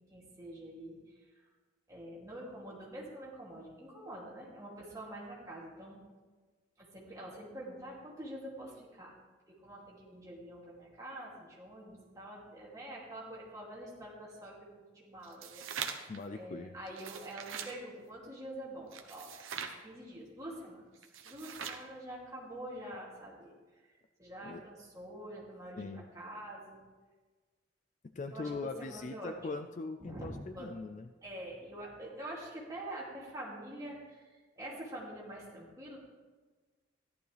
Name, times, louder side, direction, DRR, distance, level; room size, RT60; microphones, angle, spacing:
voice 1, 0.1-1.5 1.9-6.0 6.8-9.2 9.5-19.3 19.6-26.8 28.3-29.3 30.0-30.3 30.5-30.7 31.2-36.0, right 1 dB, 15° right, -5 dB, 2.6 m, -46 dB
sound 1, 15.2-16.2 16.9-17.8 18.9-19.8 21.0-21.9, right 7 dB, 80° right, 0.9 m, -42 dB
voice 2, 16.1-16.7 24.4-24.6 25.8-26.0 28.2-31.1, left 3 dB, 35° left, 8 dB, 0.3 m, -41 dB
14.0 x 11.5 x 3.3 m, 1.3 s
head